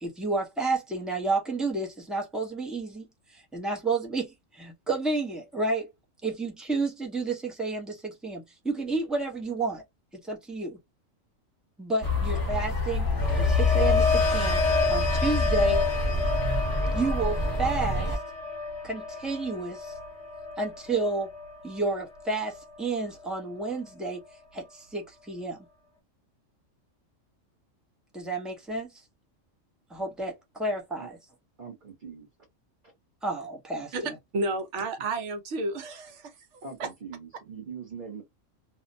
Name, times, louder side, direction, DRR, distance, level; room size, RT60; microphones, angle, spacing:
voice 1, 0.0-3.1 3.3-5.9 6.2-9.8 10.1-10.8 11.8-13.1 13.3-14.6 14.9-15.8 16.9-18.1 18.8-19.9 20.6-21.3 21.6-24.2 24.5-25.6 28.1-28.9 29.9-31.2 33.2-34.2, right 3 dB, ahead, 0.4 m, -31 dB
sound 1, 12.0-18.2, left 3 dB, 20° left, 0.8 m, -27 dB
sound 2, 12.8-22.8 23.2-23.6, left 3 dB, 65° left, 1.1 m, -30 dB
voice 2, 31.6-32.3 32.8-32.9 36.6-38.2, right 6 dB, 45° right, 1.0 m, -42 dB
voice 3, 33.9-36.3 36.8-36.9, right 2 dB, 65° right, 1.0 m, -31 dB
2.6 x 2.1 x 2.6 m
omnidirectional pair, 1.4 m